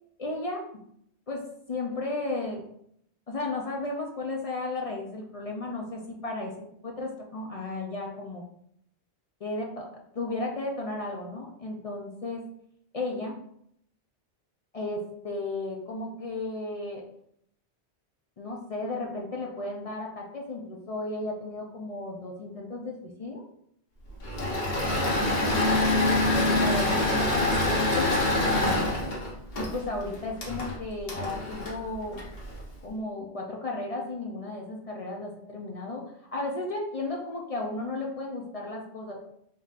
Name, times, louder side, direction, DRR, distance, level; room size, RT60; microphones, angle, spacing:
voice 1, 0.2-0.6 1.3-2.6 3.3-6.5 6.8-8.4 9.4-12.4 12.9-13.3 14.7-17.0 18.4-23.4 26.3-28.9 29.6-32.2 32.8-36.0 36.3-39.3, left 2 dB, 45° left, 0 dB, 0.5 m, -34 dB
Engine / Mechanisms, 24.2-32.6, left 2 dB, 60° left, 1.2 m, -26 dB
4.1 x 3.7 x 2.4 m, 0.70 s
omnidirectional pair, 1.1 m